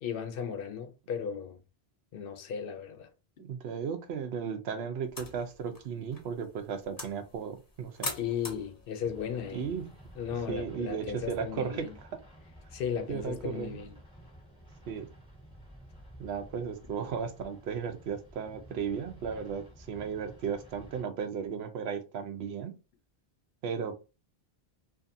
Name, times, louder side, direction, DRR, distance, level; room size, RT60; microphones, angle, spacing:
voice 1, 0.0-1.6 2.1-3.1 8.1-9.7 10.2-12.0 12.7-13.9, left 7 dB, 65° left, 0.7 m, -36 dB
voice 2, 3.4-8.1 9.5-9.8 10.3-11.9 13.1-13.8 14.9-15.1 16.2-22.7 23.6-24.0, right 6 dB, 85° right, 0.8 m, -35 dB
sound 1, 5.0-10.6, left 2 dB, 25° left, 0.6 m, -44 dB
sound 2, 9.0-21.0, equal, 5° right, 1.1 m, -52 dB
2.7 x 2.5 x 2.5 m
omnidirectional pair, 1.0 m